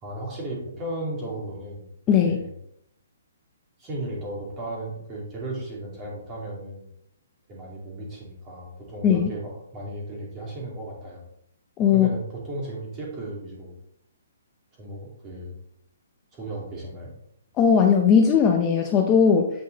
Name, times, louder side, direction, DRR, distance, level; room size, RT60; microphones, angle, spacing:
voice 1, 0.0-1.9 2.2-2.5 3.8-6.9 7.5-11.2 11.9-13.7 14.8-15.5 16.3-17.1, right 1 dB, 15° right, -4 dB, 2.5 m, -35 dB
voice 2, 2.1-2.4 9.0-9.3 11.8-12.1 17.6-19.5, left 7 dB, 15° left, 2 dB, 0.6 m, -18 dB
8.8 x 5.4 x 3.9 m, 0.74 s
hypercardioid pair, 170°, 0 cm